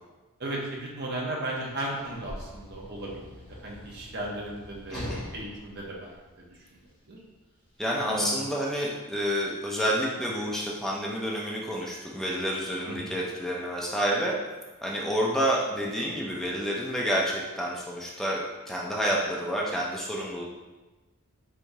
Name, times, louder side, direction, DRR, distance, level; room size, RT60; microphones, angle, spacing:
voice 1, 0.4-6.1 7.1-7.2 8.0-8.4 12.9-13.1, right 1 dB, 45° right, -3 dB, 0.9 m, -35 dB
Sliding door / Slam, 1.5-6.9 7.8-7.9, left 1 dB, 25° left, 1.0 m, -43 dB
voice 2, 4.9-5.2 7.8-14.4 14.8-20.4, equal, ahead, -4 dB, 0.5 m, -29 dB
4.7 x 3.5 x 2.7 m, 1.2 s
head